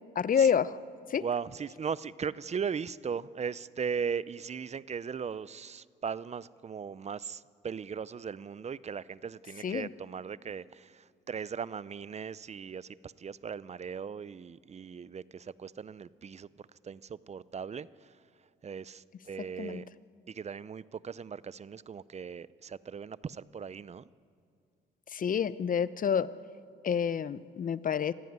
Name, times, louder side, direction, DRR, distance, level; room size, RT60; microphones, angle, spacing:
voice 1, 0.2-0.8 1.1-1.2 9.6-9.9 19.6-19.8 25.1-26.3 26.8-28.1, left 7 dB, 45° left, 17 dB, 0.8 m, -28 dB
voice 2, 1.1-16.5 16.8-18.1 18.6-19.8 20.3-24.1, right 6 dB, 35° right, 19 dB, 0.6 m, -38 dB
25.5 x 15.0 x 9.4 m, 2.3 s
cardioid pair, 90°, 20 cm